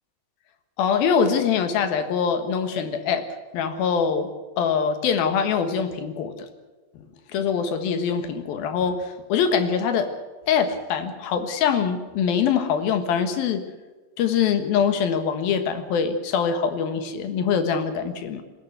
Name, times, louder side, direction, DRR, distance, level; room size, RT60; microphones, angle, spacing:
voice 1, 0.8-3.3 3.5-4.3 4.6-6.5 7.3-10.1 10.5-13.6 14.2-18.4, left 6 dB, 65° left, 9 dB, 2.8 m, -23 dB
20.5 x 18.0 x 8.1 m, 1.3 s
omnidirectional pair, 5.5 m